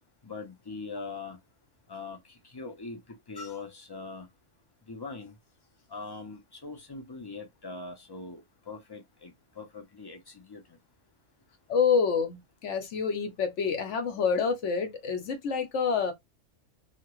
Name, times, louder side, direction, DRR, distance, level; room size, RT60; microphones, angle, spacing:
voice 1, 0.2-1.4 1.9-3.0 3.3-4.3 4.9-5.3 5.9-10.6, left 3 dB, 25° left, 0.5 m, -42 dB
voice 2, 11.7-16.1, left 6 dB, 70° left, 1.1 m, -27 dB
2.8 x 2.5 x 3.0 m
omnidirectional pair, 1.3 m